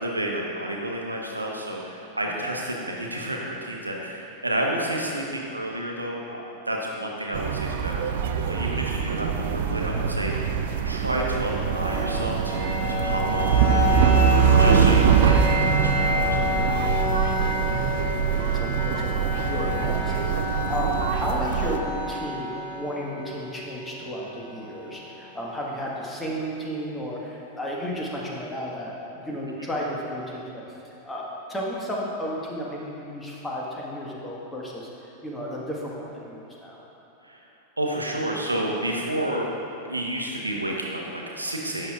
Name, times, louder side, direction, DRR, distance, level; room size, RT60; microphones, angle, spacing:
voice 1, 0.0-14.2 14.6-17.0 37.2-37.4 37.8-41.9, right 1 dB, 85° right, -1 dB, 0.9 m, -30 dB
sound 1, 7.3-21.8, right 7 dB, 55° right, 0.4 m, -23 dB
sound 2, 11.4-25.3, left 2 dB, 70° left, 1.8 m, -30 dB
voice 2, 17.7-36.8, equal, 10° left, -4 dB, 1.4 m, -33 dB
11.5 x 7.7 x 2.4 m, 2.8 s
figure-of-eight pair, 90°, 0 cm